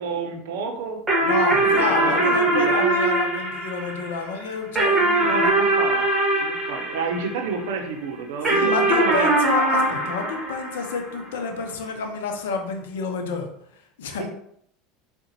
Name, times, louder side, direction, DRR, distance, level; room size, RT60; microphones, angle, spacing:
voice 1, 0.0-2.9 5.2-6.1 6.4-9.3 14.1-14.3, right 5 dB, 70° right, 4 dB, 0.5 m, -30 dB
sound 1, 1.1-7.8 8.4-11.3, right 2 dB, 25° right, 1.0 m, -22 dB
voice 2, 1.2-5.4 8.5-13.5 14.0-14.3, left 4 dB, 75° left, 5 dB, 0.5 m, -29 dB
3.7 x 2.1 x 2.8 m, 0.69 s
hypercardioid pair, 80°, 0 cm